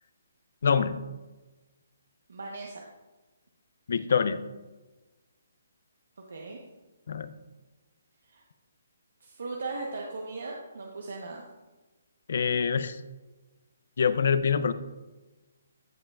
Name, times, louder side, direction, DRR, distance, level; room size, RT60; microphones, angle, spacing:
voice 1, 0.6-1.0 3.9-4.4 7.1-7.3 12.3-13.0 14.0-14.7, left 6 dB, 55° left, 13 dB, 0.5 m, -25 dB
voice 2, 2.3-2.8 6.3-6.6 8.2-8.4 9.2-11.5, right 3 dB, 75° right, 0 dB, 1.0 m, -38 dB
14.5 x 5.3 x 2.4 m, 1.2 s
hypercardioid pair, 170°, 0 cm